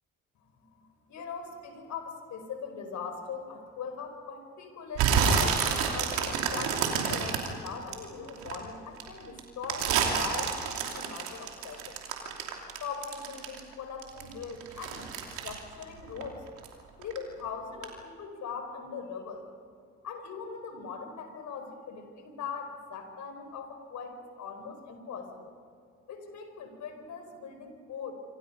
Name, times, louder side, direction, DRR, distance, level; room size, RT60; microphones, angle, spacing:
voice 1, 0.5-12.0 12.8-15.1 15.4-16.4 17.0-19.5 20.0-25.5 26.1-28.1, left 5 dB, 70° left, 6 dB, 4.6 m, -41 dB
sound 1, 4.9-8.5 9.0-13.7 14.0-16.7 17.0-17.4 17.8-17.9, right 6 dB, 85° right, 3.0 m, -29 dB
26.5 x 26.0 x 5.5 m, 2.4 s
supercardioid pair, 55°, 30 cm